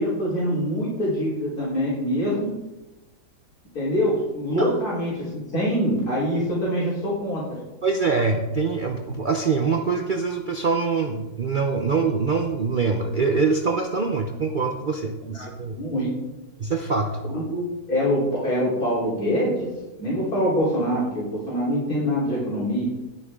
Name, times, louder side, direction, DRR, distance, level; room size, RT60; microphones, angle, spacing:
voice 1, 0.0-2.5 3.7-7.4 15.2-15.4 15.7-16.1 17.2-19.7 20.0-22.9, equal, 85° left, -7 dB, 4.3 m, -24 dB
voice 2, 7.8-15.8 16.6-17.2, right 4 dB, 45° right, 4 dB, 0.7 m, -24 dB
20.0 x 6.9 x 3.7 m, 1.1 s
omnidirectional pair, 1.6 m